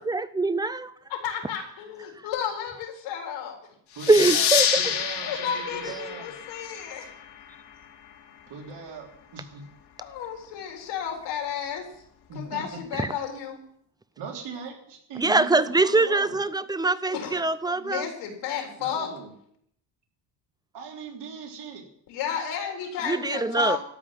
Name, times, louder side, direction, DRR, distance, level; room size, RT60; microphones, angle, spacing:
voice 1, 0.0-0.9 4.1-4.9 13.0-13.1 15.2-18.1 23.1-23.8, right 3 dB, 10° right, 15 dB, 0.4 m, -23 dB
voice 2, 1.1-3.6 5.2-7.1 10.0-11.9 12.3-13.6 17.1-17.4 17.7-19.1 22.1-23.8, left 8 dB, 80° left, 2 dB, 3.7 m, -32 dB
voice 3, 3.9-6.3 8.5-9.6 12.3-12.6 14.2-16.4 18.8-19.3 20.7-21.9, right 5 dB, 70° right, 1 dB, 3.4 m, -40 dB
sound 1, 4.0-7.2, left 8 dB, 60° left, 2.1 m, -27 dB
13.0 x 5.7 x 9.2 m, 0.68 s
cardioid pair, 120°, 43 cm